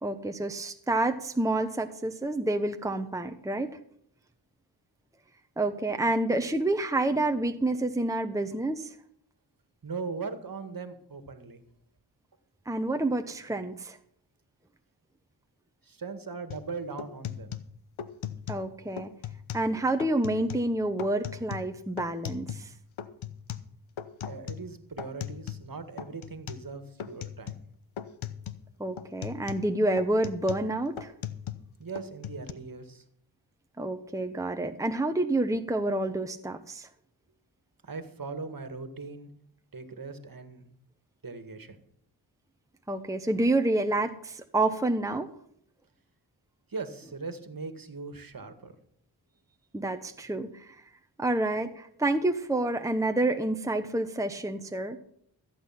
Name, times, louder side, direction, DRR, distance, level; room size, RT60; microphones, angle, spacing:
voice 1, 0.0-3.8 5.6-8.9 12.7-14.0 18.5-19.1 19.5-22.7 28.8-31.1 33.8-36.9 42.9-45.3 49.7-50.8 51.2-55.0, right 2 dB, 5° right, 6 dB, 1.1 m, -28 dB
voice 2, 9.8-11.6 15.8-17.6 24.2-27.5 31.8-33.0 37.8-39.3 39.7-40.7 41.2-41.8 46.7-48.8, right 4 dB, 45° right, 9 dB, 1.9 m, -39 dB
sound 1, 16.5-16.7 17.0-18.7 19.0-19.7 20.0-20.7 21.0-22.7 23.0-25.7 26.0-26.7 27.0-27.7 28.0-28.7 29.0-31.7 32.0-32.5, left 9 dB, 75° left, 1.0 m, -39 dB
14.5 x 8.8 x 5.9 m, 0.68 s
cardioid pair, 45°, 47 cm